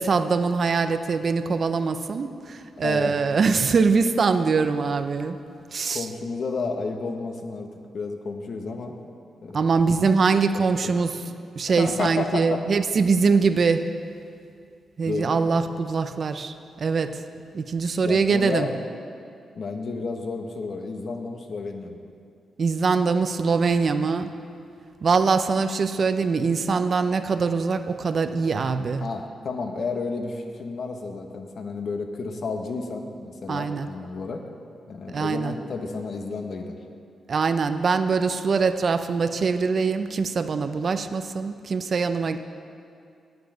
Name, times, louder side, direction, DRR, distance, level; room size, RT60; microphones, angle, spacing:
voice 1, 0.0-5.4 5.7-6.1 9.5-11.2 11.6-13.9 15.0-17.2 17.5-18.7 22.6-24.3 25.0-29.1 33.5-33.9 35.1-35.5 37.3-42.4, right 4 dB, 50° right, 10 dB, 0.6 m, -23 dB
voice 2, 2.8-3.2 5.9-8.9 9.4-9.7 10.3-10.9 11.8-12.6 15.1-15.4 18.0-18.7 19.5-22.0 29.0-34.4 34.9-36.8, left 4 dB, 60° left, 4 dB, 1.2 m, -31 dB
9.4 x 7.9 x 7.9 m, 2.4 s
cardioid pair, 90°, 0 cm